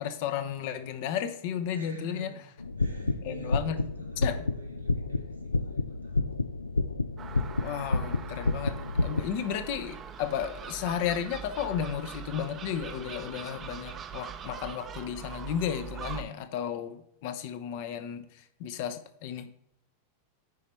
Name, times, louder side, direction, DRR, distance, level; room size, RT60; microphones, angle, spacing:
voice 1, 0.0-2.3 3.2-3.8 4.2-4.4 7.6-19.5, left 9 dB, 55° left, 10 dB, 0.8 m, -33 dB
voice 2, 1.7-2.4 2.8-6.6, equal, 90° right, -1 dB, 1.9 m, -46 dB
sound 1, 2.6-9.2, left 3 dB, 85° left, 0.3 m, -30 dB
Gull seagull, 7.2-16.2, right 8 dB, 30° right, 0.6 m, -42 dB
9.7 x 4.2 x 4.5 m, 0.72 s
figure-of-eight pair, 90°, 0 cm